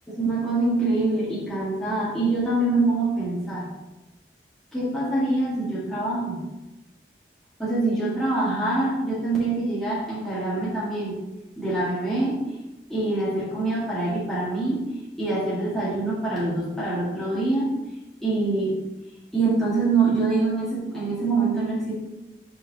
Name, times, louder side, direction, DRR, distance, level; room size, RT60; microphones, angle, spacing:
voice 1, 0.1-3.7 4.7-6.4 7.6-11.2 11.6-12.3 12.9-14.8 15.2-17.7 18.2-18.7 19.3-21.9, right 2 dB, ahead, -10 dB, 1.6 m, -25 dB
8.6 x 4.6 x 2.8 m, 1.0 s
head